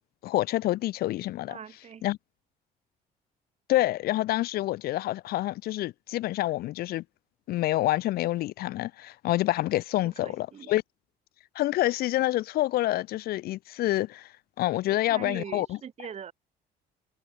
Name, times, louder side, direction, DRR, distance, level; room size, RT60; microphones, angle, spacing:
voice 1, 0.2-1.6 2.0-2.2 3.7-7.0 7.5-10.8 11.6-14.3 14.6-15.8, left 16 dB, 65° left, 0.5 m, -27 dB
voice 2, 1.5-2.0 10.2-10.7 14.7-16.3, right 8 dB, 40° right, 1.4 m, -42 dB
cardioid pair, 110°, 17 cm